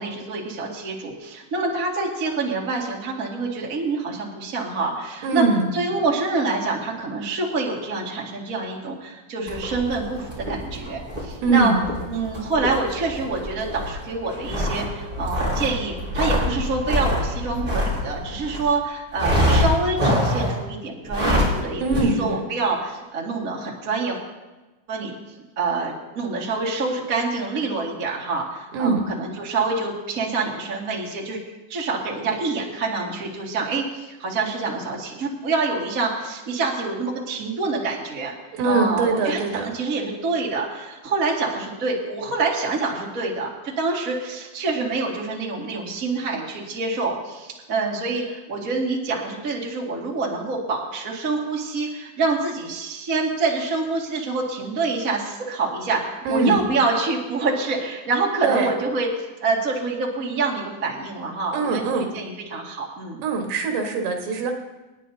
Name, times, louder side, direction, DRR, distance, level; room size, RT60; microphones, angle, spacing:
voice 1, 0.0-5.4 5.7-11.7 12.1-24.2 24.9-25.1 25.5-31.4 31.7-38.3 38.6-43.5 43.8-59.1 59.4-63.2, right 3 dB, 30° right, -3 dB, 1.8 m, -26 dB
voice 2, 5.2-5.7 11.4-11.8 21.8-22.4 28.7-29.0 38.5-39.7 56.3-56.6 58.4-58.7 61.5-62.1 63.2-64.5, right 3 dB, 90° right, 2 dB, 3.8 m, -22 dB
sound 1, 9.5-18.7 19.1-20.6 21.0-21.6 21.9-22.0, left 1 dB, 15° right, 4.1 m, -25 dB
28.0 x 9.9 x 2.8 m, 1.1 s
omnidirectional pair, 4.9 m